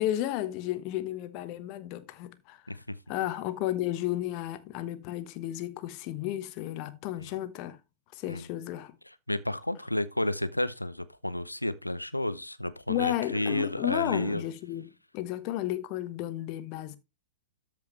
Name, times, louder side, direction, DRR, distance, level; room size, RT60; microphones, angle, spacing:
voice 1, 0.0-2.6 3.1-7.8 8.1-9.0 12.9-17.0, left 13 dB, 40° left, 1.1 m, -33 dB
voice 2, 9.3-14.4, left 1 dB, 90° left, 0.8 m, -31 dB
13.0 x 5.2 x 3.1 m
figure-of-eight pair, 105°, 0 cm